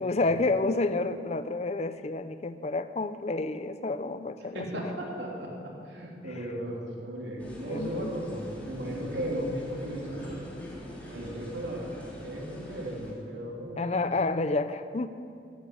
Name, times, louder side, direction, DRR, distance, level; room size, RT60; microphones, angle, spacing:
voice 1, 0.0-4.7 6.3-6.5 7.7-8.1 13.8-15.1, left 3 dB, 40° left, 11 dB, 0.5 m, -29 dB
voice 2, 4.5-10.4 11.1-14.1, right 1 dB, 85° right, -2 dB, 3.2 m, -36 dB
sound 1, 7.4-13.1, equal, 10° left, 2.9 m, -43 dB
11.5 x 10.5 x 8.5 m, 2.4 s
head